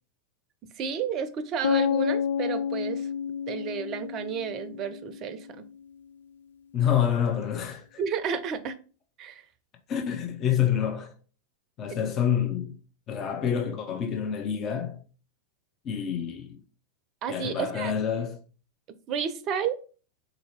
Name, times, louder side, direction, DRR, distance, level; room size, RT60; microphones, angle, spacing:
voice 1, 0.8-3.1 3.5-5.6 8.0-8.8 9.2-9.4 17.2-17.9 19.1-19.8, right 7 dB, 35° right, 0.5 m, -31 dB
sound 1, 1.6-5.5, left 7 dB, 65° left, 0.4 m, -29 dB
voice 2, 6.7-8.0 9.9-11.1 11.8-12.7 13.1-15.0 15.8-16.6 17.3-18.4, left 8 dB, 30° left, 0.7 m, -27 dB
4.0 x 2.7 x 4.2 m
figure-of-eight pair, 90°, 0 cm